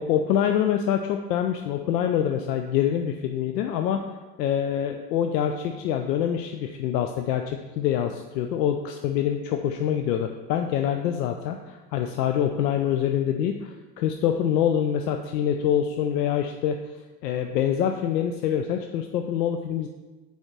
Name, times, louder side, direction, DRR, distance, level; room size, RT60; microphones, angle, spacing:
voice 1, 0.0-4.0 4.4-16.8 17.2-19.9, left 9 dB, 90° left, 5 dB, 0.5 m, -25 dB
6.4 x 4.9 x 3.3 m, 1.2 s
hypercardioid pair, 100°, 47 cm